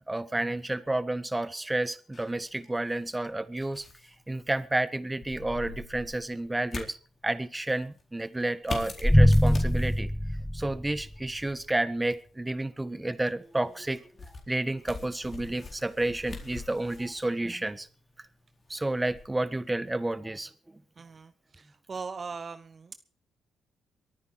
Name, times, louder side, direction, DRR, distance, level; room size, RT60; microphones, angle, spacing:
voice 1, 0.1-3.8 4.3-7.0 7.2-10.1 10.5-14.0 14.5-17.9 18.7-20.5, right 2 dB, 15° right, 13 dB, 1.6 m, -30 dB
sound 1, 2.1-20.2, left 3 dB, 45° left, 4.2 m, -45 dB
sound 2, 9.0-11.3, equal, 5° left, 0.8 m, -22 dB
voice 2, 21.0-23.0, right 4 dB, 45° right, 11 dB, 0.9 m, -40 dB
23.0 x 9.6 x 4.8 m, 0.39 s
supercardioid pair, 50°, 0 cm